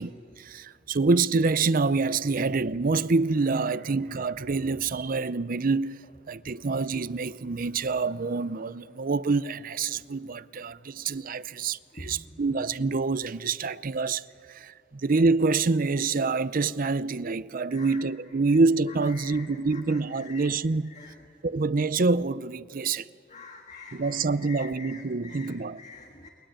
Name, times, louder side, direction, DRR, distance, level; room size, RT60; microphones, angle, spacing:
voice 1, 0.0-14.2 14.5-20.9 21.4-23.1 23.9-25.8, right 3 dB, 50° right, 0.6 m, -26 dB
voice 2, 17.7-18.0 18.5-18.6 19.0-20.5 20.9-21.2 23.3-26.3, left 4 dB, 40° left, 1.7 m, -46 dB
30.0 x 22.0 x 8.9 m
head